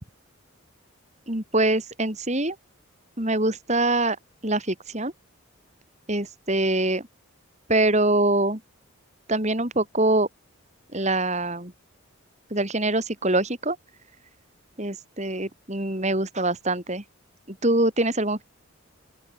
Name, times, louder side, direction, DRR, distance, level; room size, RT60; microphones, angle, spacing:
voice 1, 1.3-2.6 3.2-4.2 4.4-5.1 6.1-7.0 7.7-8.6 9.3-10.3 10.9-11.7 12.5-13.8 14.8-17.0 17.6-18.4, right 2 dB, 30° right, 3.7 m, -24 dB
open air
head